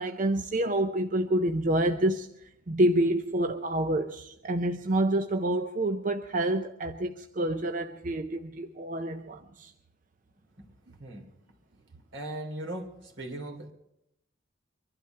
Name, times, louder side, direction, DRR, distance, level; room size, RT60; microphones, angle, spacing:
voice 1, 0.0-9.7, right 1 dB, 40° right, 0.5 m, -28 dB
voice 2, 12.1-12.9 13.2-13.7, right 1 dB, 75° right, 3.0 m, -38 dB
23.5 x 11.5 x 4.6 m
head